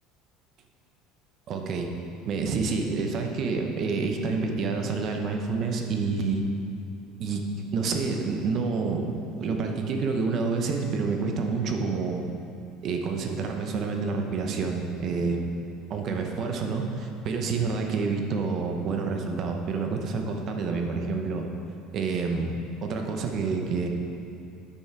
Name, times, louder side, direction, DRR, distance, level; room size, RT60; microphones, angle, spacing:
voice 1, 1.5-1.9 2.3-6.5 7.2-7.4 7.7-12.3 12.8-15.4 15.9-21.5 21.9-22.5 22.8-23.9, right 4 dB, 40° right, 3 dB, 0.7 m, -28 dB
8.5 x 5.5 x 4.6 m, 2.6 s
cardioid pair, 155°, 0 cm